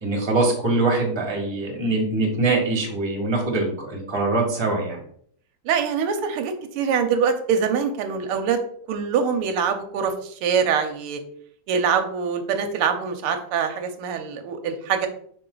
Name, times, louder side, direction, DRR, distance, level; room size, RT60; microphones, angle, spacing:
voice 1, 0.0-5.0, right 2 dB, 15° right, 0 dB, 1.4 m, -23 dB
voice 2, 5.6-8.6 8.9-11.2 11.7-15.1, right 6 dB, 85° right, 6 dB, 1.6 m, -24 dB
5.9 x 4.4 x 3.8 m, 0.62 s
omnidirectional pair, 2.4 m